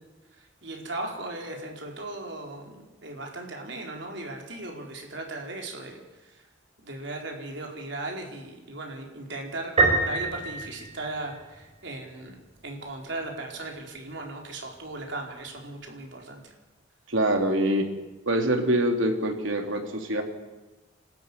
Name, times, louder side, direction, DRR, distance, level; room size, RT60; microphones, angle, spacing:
voice 1, 0.4-6.3 6.8-9.7 10.0-12.4 12.6-16.5, right 2 dB, 65° right, 1 dB, 4.6 m, -37 dB
Piano, 9.8-11.6, right 3 dB, 35° right, 4.7 m, -25 dB
voice 2, 17.1-17.9 18.2-20.2, right 1 dB, 80° right, 4 dB, 3.3 m, -24 dB
27.0 x 13.0 x 10.0 m, 1.1 s
head